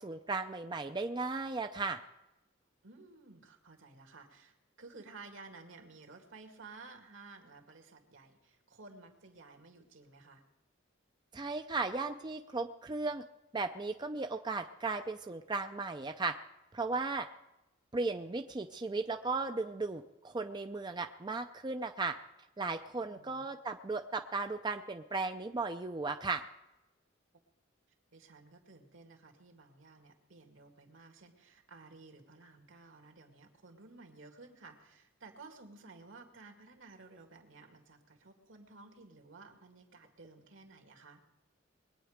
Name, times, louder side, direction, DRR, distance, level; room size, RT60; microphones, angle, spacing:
voice 1, 0.0-2.0 11.3-13.2 13.5-16.3 16.7-17.3 17.9-22.1 22.6-26.4, right 3 dB, 20° right, 6 dB, 0.5 m, -36 dB
voice 2, 2.8-10.4 23.0-23.5 28.1-41.2, right 3 dB, 75° right, 3 dB, 2.2 m, -54 dB
22.0 x 9.1 x 5.1 m, 0.94 s
head